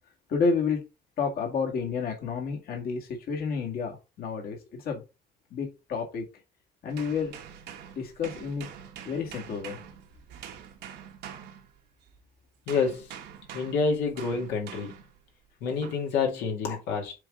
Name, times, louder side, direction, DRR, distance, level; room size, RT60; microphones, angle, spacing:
voice 1, 0.3-0.8 1.2-5.0 5.5-6.2 6.8-7.3 8.0-8.7 9.1-9.8, left 5 dB, 65° left, 2.0 m, -30 dB
sound 1, 6.9-12.2 12.7-15.2 15.8-16.1, right 9 dB, 80° right, 1.3 m, -45 dB
voice 2, 12.7-13.1 13.5-14.9 15.6-17.1, left 5 dB, 85° left, 2.1 m, -28 dB
7.5 x 3.7 x 3.7 m
cardioid pair, 110°, 17 cm